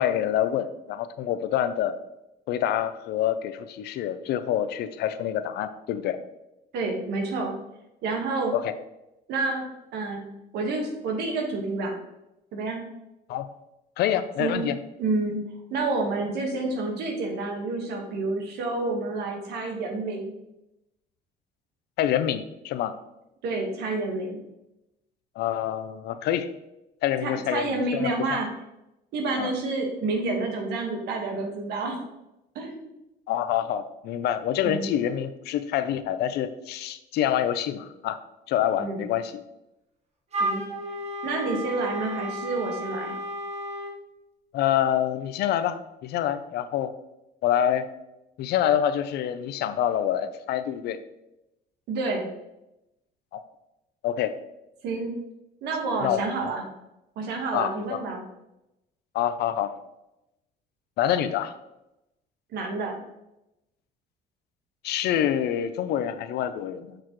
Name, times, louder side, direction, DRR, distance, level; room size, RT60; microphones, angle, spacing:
voice 1, 0.0-1.9 2.5-6.2 8.5-8.7 13.3-13.5 14.0-14.8 22.0-22.9 25.4-26.5 27.0-28.4 29.4-29.5 33.3-38.2 38.5-39.3 44.5-46.9 47.4-47.9 48.4-51.0 53.3-53.4 54.0-54.3 56.0-56.5 57.5-58.0 59.1-59.7 61.0-61.5 64.8-67.0, left 10 dB, 75° left, 11 dB, 0.6 m, -26 dB
voice 2, 6.7-7.5 8.0-8.5 9.3-9.6 9.9-10.2 10.5-12.0 12.5-12.8 14.4-14.6 15.0-15.4 15.7-20.3 23.4-24.4 27.2-28.5 29.1-32.0 32.5-32.9 34.6-34.9 38.8-39.0 40.4-40.6 41.2-43.1 51.9-52.3 54.8-55.1 55.6-56.6 57.1-58.2 62.5-63.0, right 3 dB, 80° right, 2 dB, 1.5 m, -29 dB
Wind instrument woodwind instrument, 40.3-44.0, equal, 40° right, 1.4 m, -32 dB
6.5 x 6.0 x 3.1 m, 0.90 s
cardioid pair, 110°, 17 cm